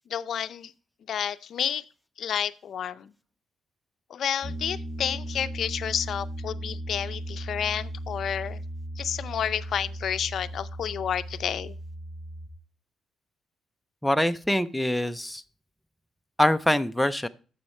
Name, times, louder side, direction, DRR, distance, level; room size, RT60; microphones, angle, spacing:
voice 1, 0.1-0.7 1.1-1.8 2.2-3.1 4.1-8.6 9.0-11.8, left 9 dB, 65° left, 13 dB, 0.5 m, -30 dB
Piano, 4.4-12.5, right 1 dB, 20° right, 1.6 m, -37 dB
voice 2, 14.0-15.4 16.4-17.3, left 1 dB, 5° left, 9 dB, 0.5 m, -24 dB
9.6 x 7.2 x 4.3 m, 0.37 s
cardioid pair, 115°, 0 cm